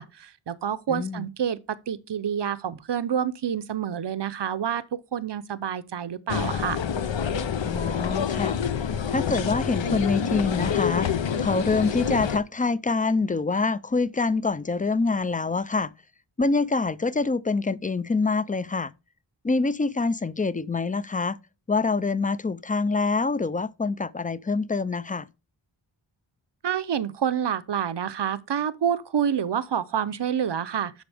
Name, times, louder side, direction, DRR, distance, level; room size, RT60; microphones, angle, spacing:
voice 1, 0.0-6.8 26.6-31.0, right 8 dB, 65° right, 0.7 m, -28 dB
voice 2, 0.9-1.3 7.6-8.6 9.1-15.9 16.4-18.9 19.4-21.4 21.7-25.3, left 4 dB, 20° left, 0.4 m, -25 dB
sound 1, 6.3-12.4, left 7 dB, 75° left, 0.7 m, -27 dB
11.5 x 5.0 x 3.4 m
wide cardioid pair, 60°, 45 cm